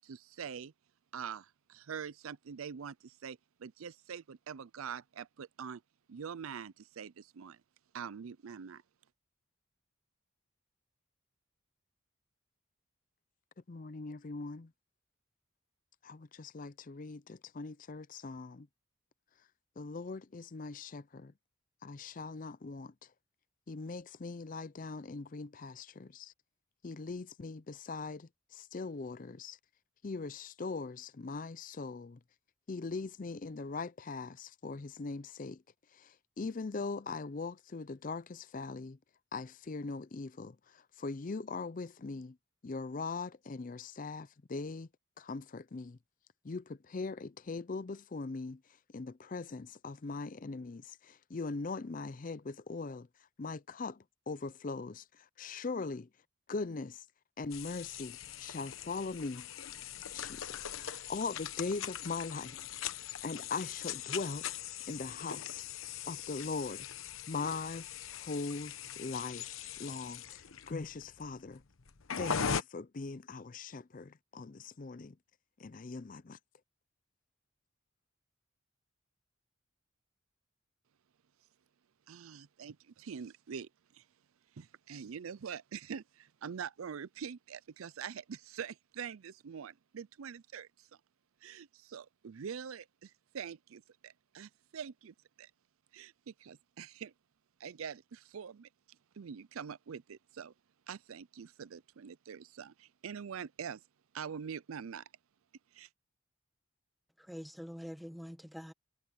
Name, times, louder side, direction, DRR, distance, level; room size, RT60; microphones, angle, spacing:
voice 1, 0.0-0.7 1.1-5.8 6.1-7.6 7.9-8.8 82.1-84.0 84.6-90.9 91.4-95.5 95.9-97.1 97.6-98.7 99.2-100.5 100.9-103.8 104.1-105.1 105.7-105.9, right 7 dB, 85° right, 0.5 m, -44 dB
voice 2, 13.6-14.7 16.0-18.7 19.3-19.5 19.8-21.3 21.8-23.1 23.7-26.3 26.8-29.6 30.0-32.2 32.7-39.0 39.3-42.4 42.6-44.9 45.2-46.0 46.4-57.1 57.4-59.5 60.1-62.8 63.2-65.7 66.1-66.9 67.3-71.6 72.2-75.2 75.6-76.4, left 3 dB, 40° left, 0.5 m, -41 dB
sound 1, 57.5-72.6, left 7 dB, 80° left, 1.0 m, -41 dB
voice 3, 107.2-108.7, equal, ahead, 1.3 m, -45 dB
head